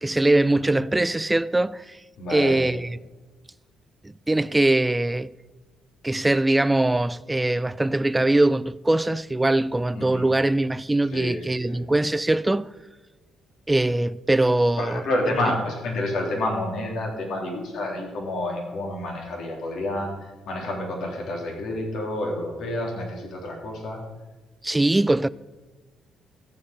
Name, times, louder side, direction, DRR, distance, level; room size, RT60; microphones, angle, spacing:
voice 1, 0.0-2.0 2.3-3.0 4.0-5.3 6.0-12.7 13.7-15.0 24.6-25.3, right 2 dB, 15° right, 0.3 m, -22 dB
voice 2, 2.2-2.6 9.9-10.3 11.1-11.8 14.8-24.0, left 1 dB, 70° left, 3.4 m, -29 dB
14.0 x 8.0 x 5.2 m
cardioid pair, 85°, 0 cm